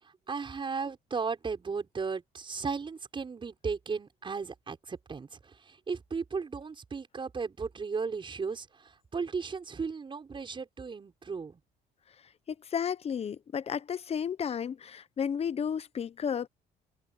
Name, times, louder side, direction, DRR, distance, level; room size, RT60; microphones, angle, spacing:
voice 1, 0.0-11.6, right 5 dB, 30° right, 6.1 m, -36 dB
voice 2, 12.6-16.5, left 7 dB, 35° left, 0.9 m, -32 dB
cardioid pair, 110°, 17 cm